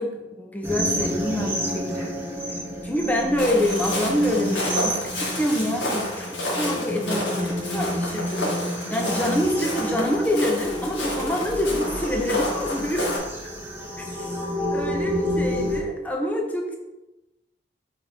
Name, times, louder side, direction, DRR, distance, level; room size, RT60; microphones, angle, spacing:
voice 1, 0.0-2.2 2.8-13.2 14.1-14.3 14.7-16.8, left 1 dB, 10° left, 1 dB, 0.9 m, -26 dB
sound 1, 0.6-15.8, equal, 10° right, 1.2 m, -30 dB
Walk footsteps, 3.4-13.2, left 1 dB, 90° left, 2.0 m, -30 dB
4.9 x 3.8 x 5.7 m, 1.0 s
head